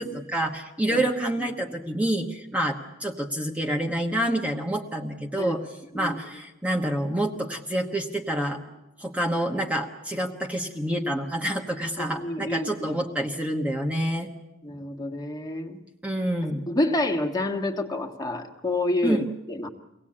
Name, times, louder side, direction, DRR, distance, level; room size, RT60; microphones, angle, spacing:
voice 1, 0.0-8.6 9.0-14.3 16.0-16.6 19.0-19.3, right 1 dB, 5° right, 1 dB, 1.1 m, -28 dB
voice 2, 12.0-13.0 14.6-15.8 16.4-19.7, left 1 dB, 20° left, 2 dB, 1.6 m, -29 dB
24.0 x 18.0 x 8.7 m, 1.0 s
head